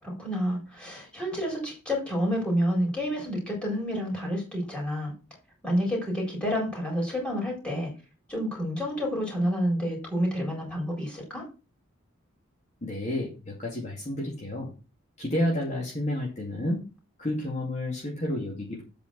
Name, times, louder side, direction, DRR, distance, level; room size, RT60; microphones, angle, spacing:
voice 1, 0.0-5.1 5.6-7.9 8.3-11.4, equal, 5° left, -2 dB, 4.2 m, -29 dB
voice 2, 12.8-14.7 15.2-16.8 17.2-18.8, left 1 dB, 30° left, -3 dB, 2.2 m, -30 dB
8.1 x 5.1 x 5.9 m, 0.31 s
head